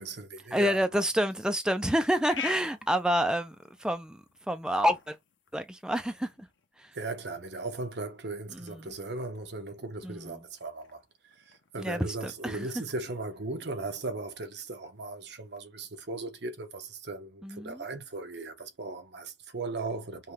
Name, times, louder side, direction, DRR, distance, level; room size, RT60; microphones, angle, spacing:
voice 1, 0.0-0.8 6.9-11.0 11.3-20.3, right 3 dB, 60° right, 1.0 m, -37 dB
voice 2, 0.5-5.2 5.5-6.5 6.8-7.0 8.5-8.9 10.0-10.4 11.8-12.7 17.4-17.8, equal, 5° right, 0.4 m, -29 dB
sound 1, 1.6-15.6, left 7 dB, 80° left, 0.9 m, -49 dB
5.5 x 2.3 x 3.3 m
head